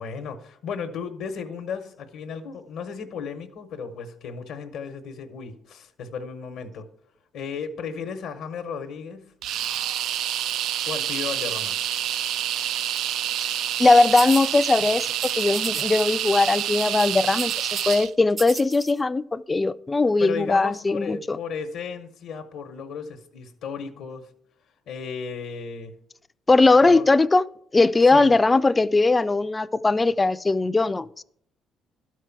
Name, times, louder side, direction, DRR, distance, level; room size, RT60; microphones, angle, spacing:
voice 1, 0.0-6.8 7.3-9.2 10.9-11.8 20.2-24.3 24.9-25.9 26.8-27.1 28.1-28.3, left 6 dB, 80° left, 0.9 m, -34 dB
sound 1, 9.4-18.1, right 11 dB, 80° right, 0.3 m, -27 dB
voice 2, 13.8-21.4 26.5-27.4 27.7-31.2, left 3 dB, 20° left, 0.4 m, -20 dB
sound 2, 14.2-14.5 15.2-16.0 16.3-16.5 16.8-18.0 18.3-18.9, right 4 dB, 40° right, 0.7 m, -35 dB
12.0 x 4.7 x 5.8 m
cardioid pair, 90°, 0 cm